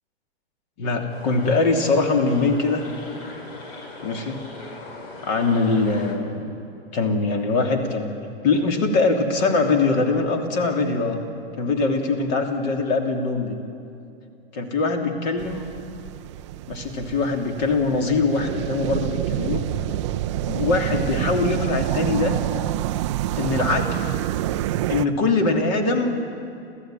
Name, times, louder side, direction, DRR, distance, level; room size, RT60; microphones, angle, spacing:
voice 1, 0.8-2.9 4.0-4.5 5.2-6.4 6.9-8.1 8.4-11.2 11.6-13.6 14.5-15.6 16.7-19.6 20.4-22.4 23.4-24.2 24.9-26.1, left 3 dB, 45° left, 3 dB, 3.0 m, -22 dB
sound 1, 1.1-6.2, left 2 dB, 70° left, 4.6 m, -39 dB
sound 2, 15.4-25.1, right 14 dB, 30° right, 0.4 m, -27 dB
28.0 x 15.0 x 9.1 m, 2.6 s
hypercardioid pair, 150°, 32 cm